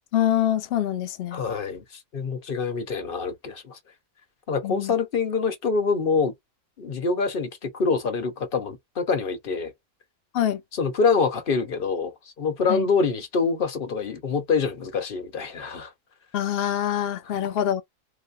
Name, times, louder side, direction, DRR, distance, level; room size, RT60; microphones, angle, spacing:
voice 1, 0.1-1.4 4.6-4.9 10.3-10.6 12.7-12.8 16.3-17.8, left 11 dB, 85° left, 0.5 m, -25 dB
voice 2, 1.3-3.8 4.5-6.3 6.8-9.7 10.7-15.9, left 4 dB, 40° left, 1.0 m, -25 dB
4.1 x 2.2 x 2.6 m
omnidirectional pair, 1.6 m